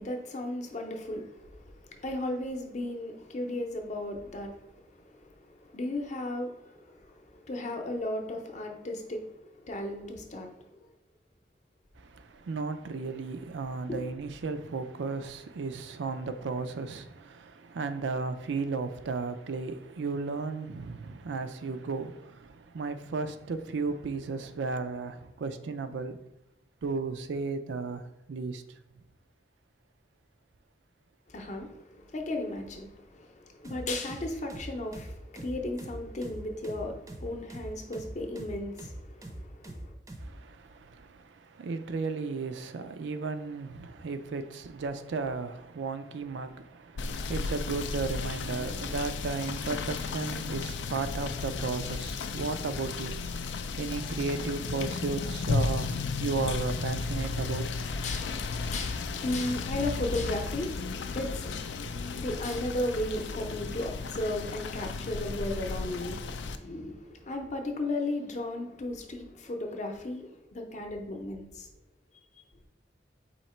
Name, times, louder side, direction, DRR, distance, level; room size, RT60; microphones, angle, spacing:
voice 1, 0.0-10.7 13.9-14.0 31.3-39.9 57.2-57.4 58.0-71.7, left 1 dB, 40° left, 0.7 m, -35 dB
voice 2, 12.0-26.2 26.8-28.6 40.2-57.6, right 4 dB, 85° right, 0.4 m, -34 dB
sound 1, 33.6-40.4, right 1 dB, 20° right, 0.5 m, -43 dB
Rain / Motor vehicle (road), 47.0-66.6, left 4 dB, 85° left, 0.4 m, -34 dB
4.3 x 2.8 x 4.3 m
head